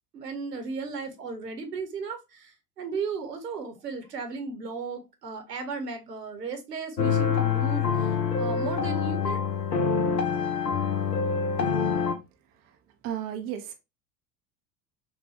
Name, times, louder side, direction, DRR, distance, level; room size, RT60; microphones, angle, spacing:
voice 1, 0.1-9.5, right 4 dB, 75° right, 1.1 m, -35 dB
sound 1, 7.0-12.1, left 6 dB, 85° left, 0.6 m, -26 dB
voice 2, 13.0-13.7, right 10 dB, 20° right, 0.4 m, -33 dB
6.0 x 2.3 x 2.8 m
figure-of-eight pair, 80°, 49 cm